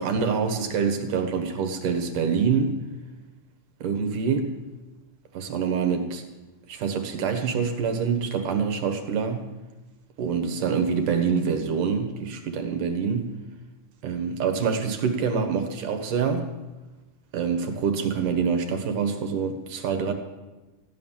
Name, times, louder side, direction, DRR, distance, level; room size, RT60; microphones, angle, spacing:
voice 1, 0.0-2.7 3.8-4.5 5.3-6.2 6.7-9.5 10.2-13.3 14.0-16.5 17.3-20.1, right 6 dB, 75° right, 6 dB, 3.0 m, -26 dB
15.5 x 10.0 x 7.4 m, 1.1 s
omnidirectional pair, 3.7 m